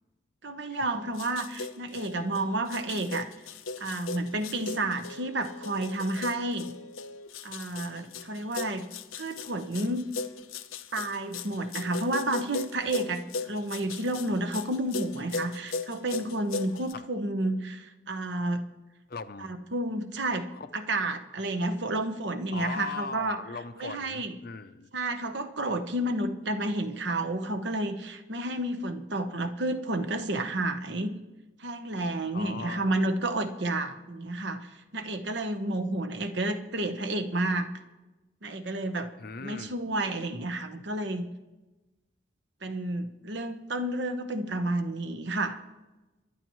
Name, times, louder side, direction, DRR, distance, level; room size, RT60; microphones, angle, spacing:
voice 1, 0.4-3.3 3.8-6.7 7.4-8.9 9.1-10.0 10.9-18.7 19.4-20.5 20.7-23.4 23.8-24.3 24.9-31.1 31.6-37.7 38.4-39.1 39.4-41.3 42.6-45.6, right 2 dB, 55° right, 7 dB, 1.0 m, -31 dB
sound 1, 0.9-16.9, left 4 dB, 85° left, 0.7 m, -38 dB
voice 2, 19.1-19.6 20.5-20.7 22.5-24.9 32.3-33.0 39.2-39.7, left 4 dB, 45° left, 11 dB, 0.6 m, -39 dB
23.0 x 11.5 x 3.1 m, 1.1 s
head